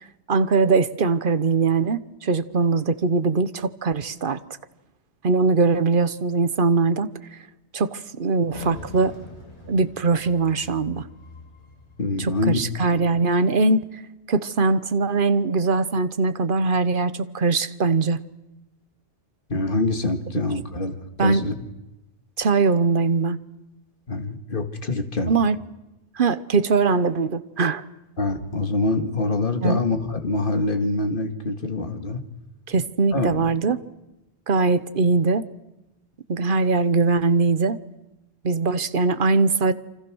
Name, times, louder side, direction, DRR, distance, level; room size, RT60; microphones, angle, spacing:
voice 1, 0.3-4.4 5.2-7.1 7.7-9.1 9.7-11.1 12.2-13.8 14.3-18.2 21.2-21.5 22.4-23.4 25.3-25.6 26.2-27.8 29.6-29.8 32.7-33.8 34.5-35.4 36.3-37.8 38.4-39.7, right 4 dB, 50° right, 13 dB, 1.2 m, -21 dB
sound 1, 8.5-13.1, left 2 dB, 75° left, 6.5 m, -42 dB
voice 2, 12.0-12.6 19.5-21.6 24.1-25.3 28.2-32.2 33.1-33.5, left 2 dB, 50° left, 6 dB, 2.2 m, -25 dB
28.0 x 25.5 x 6.3 m, 0.96 s
omnidirectional pair, 1.2 m